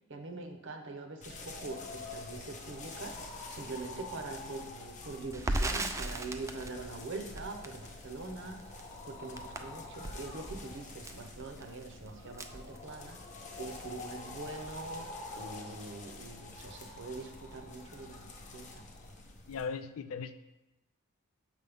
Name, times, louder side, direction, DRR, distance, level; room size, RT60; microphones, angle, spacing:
voice 1, 0.1-3.2 3.5-8.6 9.1-13.2 13.6-15.1 15.3-18.8, right 3 dB, 60° right, 5 dB, 0.8 m, -43 dB
sound 1, 1.2-19.7, left 2 dB, 35° left, 0.7 m, -47 dB
Crackle, 5.3-13.4 13.7-13.9 14.2-14.9, right 2 dB, 15° right, 0.3 m, -39 dB
voice 2, 19.5-20.3, left 5 dB, 85° left, 11 dB, 0.4 m, -38 dB
6.5 x 5.3 x 3.5 m, 0.96 s
head